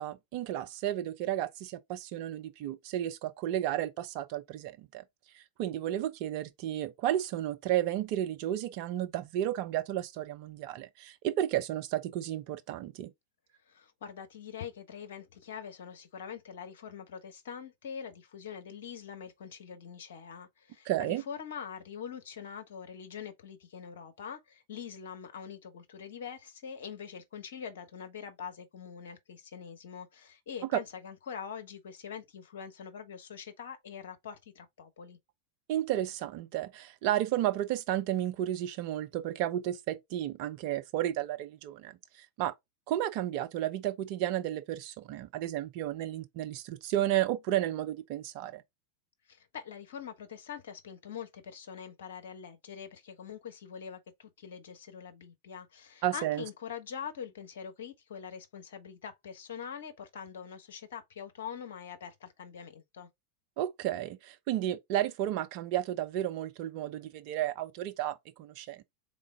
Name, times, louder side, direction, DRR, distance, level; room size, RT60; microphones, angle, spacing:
voice 1, 0.0-5.0 5.3-13.1 20.9-21.2 35.7-42.5 42.9-48.6 56.0-56.4 63.6-68.8, right 12 dB, 45° right, 0.6 m, -32 dB
voice 2, 13.7-35.2 49.3-63.1, left 7 dB, 60° left, 1.0 m, -44 dB
3.8 x 3.7 x 3.6 m
figure-of-eight pair, 90°, 0 cm